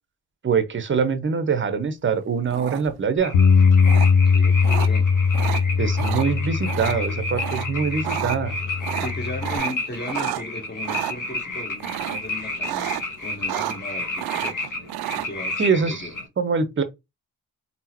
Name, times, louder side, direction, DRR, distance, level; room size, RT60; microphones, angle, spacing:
voice 1, 0.4-3.3 5.8-8.5 15.6-16.0 16.4-16.8, right 5 dB, 30° right, 0.8 m, -23 dB
sound 1, 2.5-3.1 3.9-4.1 4.6-4.9 5.3-5.6 6.0-6.3 6.6-7.0 7.4-7.7 7.9-8.4 8.8-10.4 10.8-11.1 11.8-12.3 12.6-13.0 13.3-13.9 14.2-15.3, right 14 dB, 65° right, 0.5 m, -30 dB
sound 2, 3.2-16.3, left 2 dB, 50° left, 1.3 m, -32 dB
Bass guitar, 3.3-9.6, left 5 dB, 70° left, 0.7 m, -20 dB
voice 2, 4.2-5.1 9.0-12.9 13.2-14.6 15.1-16.1, left 2 dB, 25° left, 1.4 m, -36 dB
3.7 x 2.0 x 2.9 m
hypercardioid pair, 45°, 40 cm